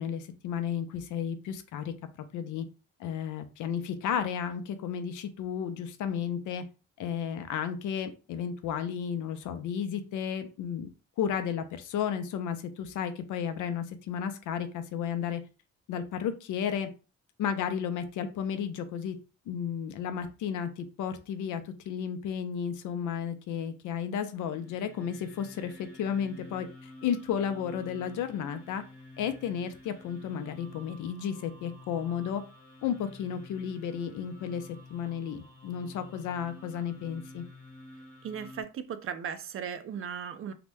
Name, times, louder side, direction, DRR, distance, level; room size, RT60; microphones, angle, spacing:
voice 1, 0.0-1.9 2.3-2.7 3.0-6.6 7.0-10.9 11.2-15.4 15.9-16.9 17.4-19.2 19.5-28.8 29.2-32.4 32.8-37.4, left 8 dB, 80° left, 0.6 m, -33 dB
sound 1, 24.3-38.6, left 1 dB, 30° left, 1.2 m, -50 dB
voice 2, 38.2-40.5, right 7 dB, 45° right, 0.4 m, -37 dB
2.8 x 2.1 x 3.3 m
cardioid pair, 90°, 30 cm